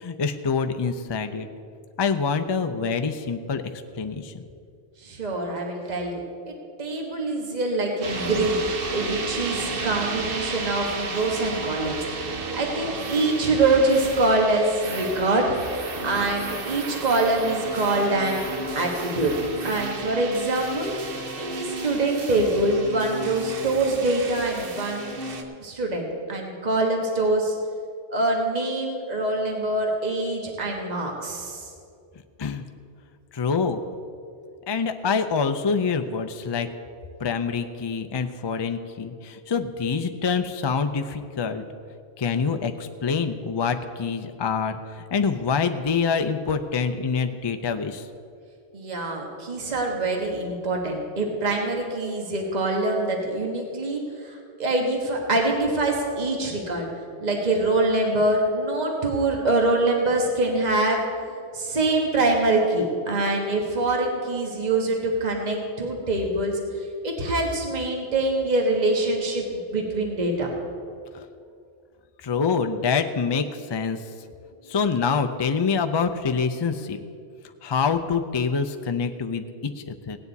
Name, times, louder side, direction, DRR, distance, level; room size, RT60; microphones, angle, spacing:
voice 1, 0.0-1.5 2.0-3.6 4.0-4.3 32.4-32.6 33.3-33.8 34.7-36.7 37.2-41.6 42.2-44.8 45.1-48.0 71.1-71.2 72.2-74.0 74.7-77.0 77.6-80.2, left 5 dB, 35° left, 7 dB, 0.4 m, -26 dB
voice 2, 5.0-8.6 8.9-15.5 16.0-18.4 18.7-19.3 19.6-20.9 21.4-25.1 25.6-27.5 28.1-31.7 48.7-56.9 57.2-61.1 61.5-70.5, right 2 dB, 40° right, 1 dB, 1.5 m, -24 dB
sound 1, 8.0-25.4, right 3 dB, 55° right, 1.1 m, -33 dB
17.0 x 9.6 x 4.1 m, 2.4 s
omnidirectional pair, 1.1 m